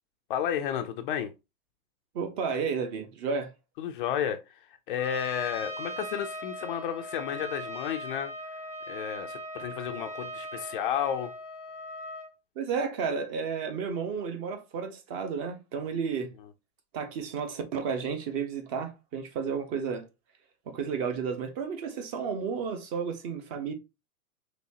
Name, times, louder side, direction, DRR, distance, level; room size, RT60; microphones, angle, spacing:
voice 1, 0.3-1.3 3.8-4.4 4.9-8.3 8.9-11.3, left 9 dB, 40° left, 0.4 m, -32 dB
voice 2, 2.1-3.5 12.6-16.3 16.9-20.1 20.7-23.7, right 6 dB, 40° right, 0.9 m, -32 dB
Trumpet, 5.0-12.3, equal, 5° right, 0.6 m, -39 dB
4.1 x 3.2 x 2.8 m
hypercardioid pair, 125°, 44 cm